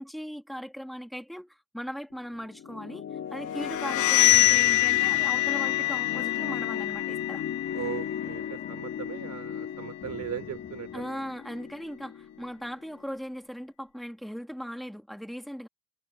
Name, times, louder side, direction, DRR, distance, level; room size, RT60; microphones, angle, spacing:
voice 1, 0.0-7.4 10.9-15.7, equal, ahead, 2.9 m, -38 dB
sound 1, 2.1-13.2, left 8 dB, 55° left, 3.3 m, -37 dB
sound 2, 3.6-9.2, left 18 dB, 80° left, 0.5 m, -25 dB
sound 3, 4.2-7.2 7.5-11.1, left 5 dB, 30° left, 3.1 m, -50 dB
voice 2, 7.7-11.2, right 9 dB, 65° right, 4.3 m, -38 dB
cardioid pair, 90°, 30 cm